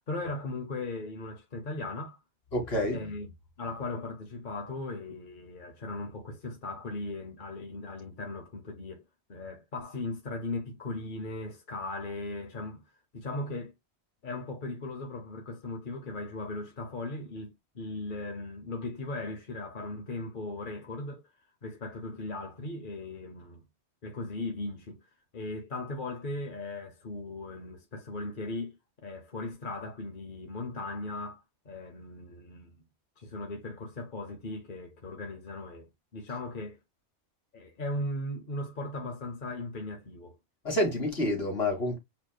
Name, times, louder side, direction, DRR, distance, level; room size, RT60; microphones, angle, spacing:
voice 1, 0.1-2.2 2.9-3.3 3.6-9.0 9.3-12.8 13.1-13.7 14.2-21.3 21.6-23.6 24.0-25.0 25.3-32.8 33.2-36.8 37.5-40.4, left 2 dB, 50° left, 1.1 m, -38 dB
voice 2, 2.5-3.0 40.6-42.0, left 1 dB, 65° left, 2.1 m, -28 dB
7.3 x 3.1 x 2.3 m
omnidirectional pair, 1.1 m